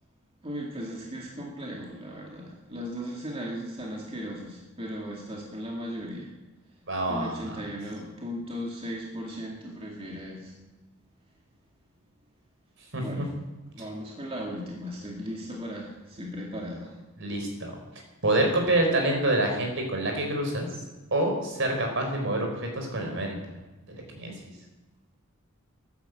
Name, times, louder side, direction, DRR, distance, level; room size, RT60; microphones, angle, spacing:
voice 1, 0.4-6.3 7.1-10.5 13.0-13.3 13.7-17.0, equal, 25° right, -2 dB, 2.3 m, -37 dB
voice 2, 6.9-7.6 12.9-13.2 17.2-17.7 18.2-20.8 21.1-23.4 23.9-24.5, right 1 dB, 55° right, 2 dB, 4.5 m, -27 dB
15.0 x 12.0 x 7.9 m, 1.2 s
head